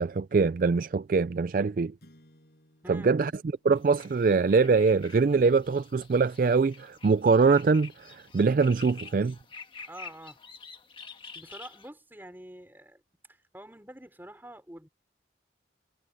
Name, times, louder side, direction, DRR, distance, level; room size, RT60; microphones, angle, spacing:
voice 1, 0.0-1.9 2.9-3.3 3.6-9.4, right 4 dB, 50° right, 0.3 m, -23 dB
sound 1, 2.0-6.5, equal, 60° left, 6.4 m, -63 dB
voice 2, 2.8-3.2 9.9-10.4 11.3-13.0 13.3-14.9, right 1 dB, 10° right, 4.2 m, -47 dB
sound 2, 3.7-11.9, left 5 dB, 30° left, 1.5 m, -48 dB
head